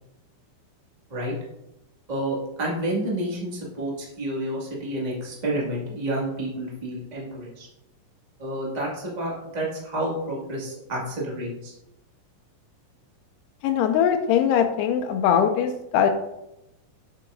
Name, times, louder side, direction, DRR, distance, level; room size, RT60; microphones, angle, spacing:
voice 1, 2.1-7.7 8.4-11.7, right 1 dB, 60° right, -5 dB, 0.4 m, -29 dB
voice 2, 13.6-16.1, left 8 dB, 90° left, 5 dB, 2.6 m, -21 dB
7.9 x 7.4 x 2.6 m, 0.87 s
omnidirectional pair, 4.6 m